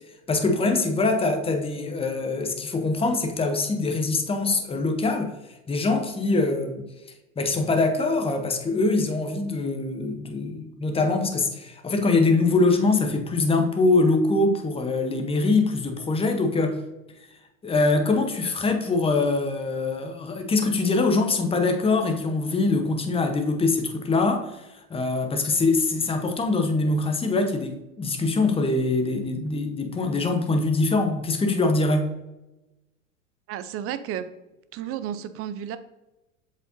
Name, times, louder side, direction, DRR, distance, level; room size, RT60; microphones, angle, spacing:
voice 1, 0.3-5.3 5.7-6.9 7.4-16.8 17.6-24.6 24.9-32.1, left 3 dB, 15° left, 5 dB, 0.9 m, -23 dB
voice 2, 33.5-34.3 34.7-35.8, right 10 dB, 35° right, 12 dB, 0.6 m, -32 dB
7.4 x 5.3 x 2.7 m, 0.99 s
hypercardioid pair, 100°, 41 cm